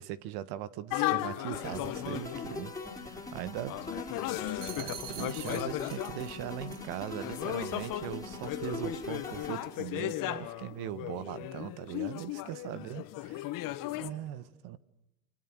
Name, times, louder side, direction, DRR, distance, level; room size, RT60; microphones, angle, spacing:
voice 1, 0.0-2.7 3.0-3.8 4.7-13.4 14.0-14.8, right 13 dB, 55° right, 17 dB, 1.6 m, -40 dB
sound 1, 0.9-2.7 3.7-6.2 7.0-14.1, left 16 dB, 45° left, 1.9 m, -36 dB
sound 2, 1.5-9.9, left 3 dB, 5° left, 4.4 m, -42 dB
voice 2, 3.7-4.9 12.7-14.5, left 10 dB, 85° left, 5 dB, 3.7 m, -53 dB
sound 3, 4.4-6.4 6.7-7.0, right 10 dB, 80° right, 2.6 m, -45 dB
29.5 x 25.5 x 6.4 m, 0.90 s
supercardioid pair, 120°, 46 cm